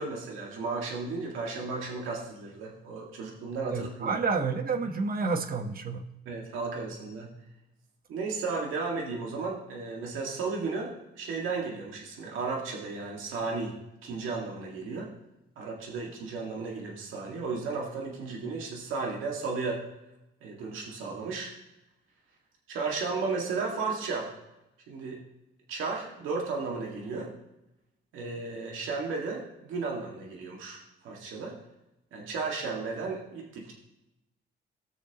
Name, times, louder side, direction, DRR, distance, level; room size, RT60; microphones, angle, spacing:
voice 1, 0.0-4.2 6.3-7.3 8.1-15.1 15.6-19.8 20.4-21.5 22.7-24.3 24.9-25.2 25.7-27.3 28.1-31.6 32.1-33.7, right 4 dB, 90° right, -1 dB, 2.1 m, -34 dB
voice 2, 3.7-6.0, right 4 dB, 50° right, 5 dB, 1.3 m, -29 dB
19.0 x 6.5 x 3.0 m, 0.92 s
cardioid pair, 90°, 20 cm